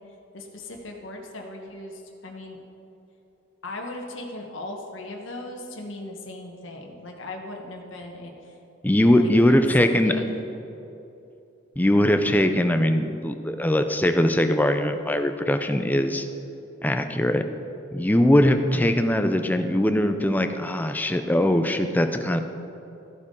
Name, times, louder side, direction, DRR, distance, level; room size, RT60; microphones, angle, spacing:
voice 1, 0.3-2.6 3.6-8.5 9.2-10.4, left 2 dB, 75° left, 1 dB, 1.2 m, -38 dB
voice 2, 8.8-10.2 11.8-16.2 16.8-17.4 17.9-22.4, left 1 dB, 10° left, 7 dB, 0.4 m, -21 dB
14.5 x 7.9 x 3.7 m, 2.9 s
head